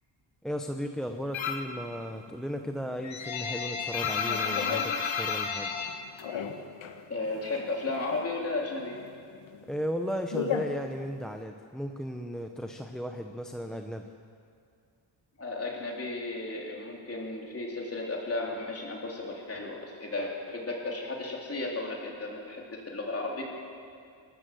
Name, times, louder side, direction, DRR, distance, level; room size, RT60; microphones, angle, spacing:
voice 1, 0.4-5.7 9.7-14.1, equal, ahead, 5 dB, 0.7 m, -35 dB
sound 1, 1.3-1.8 2.1-7.0 7.3-8.3 8.6-11.4, left 6 dB, 85° left, 1.6 m, -32 dB
voice 2, 7.1-9.0 15.4-23.4, left 2 dB, 30° left, -1 dB, 3.6 m, -34 dB
27.0 x 13.0 x 7.7 m, 2.4 s
wide cardioid pair, 165°, 46 cm